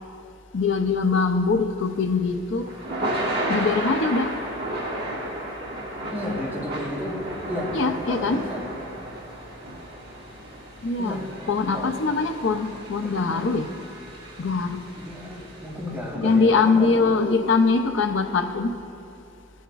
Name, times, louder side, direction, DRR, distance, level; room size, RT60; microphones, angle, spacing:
voice 1, 0.5-2.7 3.5-4.3 7.7-8.4 10.8-11.2 11.5-13.7 14.4-14.8 16.2-18.7, left 4 dB, 70° left, 7 dB, 0.5 m, -22 dB
Thunder / Rain, 1.9-16.1, right 1 dB, 50° right, 1.5 m, -33 dB
voice 2, 6.1-7.7 8.1-8.7 10.3-10.4 11.0-11.3 11.7-11.9 13.0-13.6 15.0-17.4, equal, 10° right, -7 dB, 2.2 m, -33 dB
17.0 x 7.1 x 2.4 m, 2.7 s
head